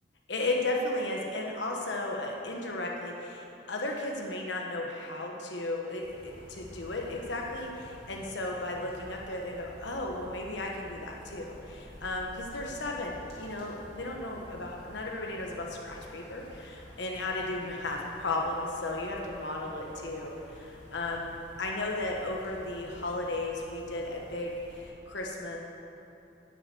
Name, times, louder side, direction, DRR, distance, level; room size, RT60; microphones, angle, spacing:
voice 1, 0.3-25.6, left 2 dB, 70° left, 0 dB, 1.2 m, -35 dB
sound 1, 6.0-24.9, equal, 30° left, 3.1 m, -50 dB
10.5 x 7.5 x 8.3 m, 2.8 s
head